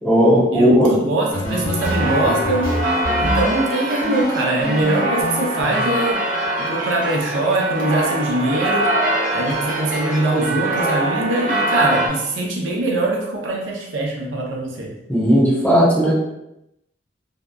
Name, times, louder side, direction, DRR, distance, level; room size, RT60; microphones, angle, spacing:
voice 1, 0.0-0.9 15.1-16.1, equal, 10° left, -8 dB, 0.8 m, -15 dB
voice 2, 0.5-2.7 3.2-6.2 6.6-8.9 9.3-14.9, right 2 dB, 90° right, -1 dB, 0.6 m, -22 dB
sound 1, 1.3-3.6 4.0-5.8, left 1 dB, 80° left, 0.9 m, -25 dB
sound 2, 1.8-12.1, right 1 dB, 45° right, 0.5 m, -23 dB
2.7 x 2.2 x 2.2 m, 0.87 s
head